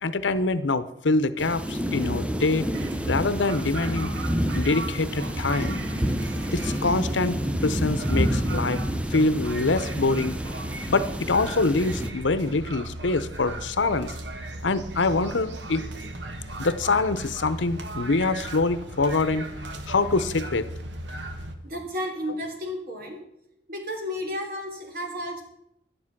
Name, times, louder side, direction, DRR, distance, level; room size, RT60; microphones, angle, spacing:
voice 1, 0.0-2.7 3.1-4.1 4.5-5.8 6.5-8.8 9.1-10.4 10.9-14.1 14.6-15.9 16.6-19.5 19.9-20.7, left 3 dB, 85° left, 13 dB, 0.8 m, -25 dB
sound 1, 1.4-12.1, equal, 5° right, 0.6 m, -29 dB
sound 2, 2.7-21.6, right 1 dB, 75° right, 1.4 m, -37 dB
voice 2, 21.6-23.2 23.7-25.4, left 1 dB, 55° right, 1 dB, 3.2 m, -33 dB
11.5 x 10.0 x 6.0 m, 0.80 s
head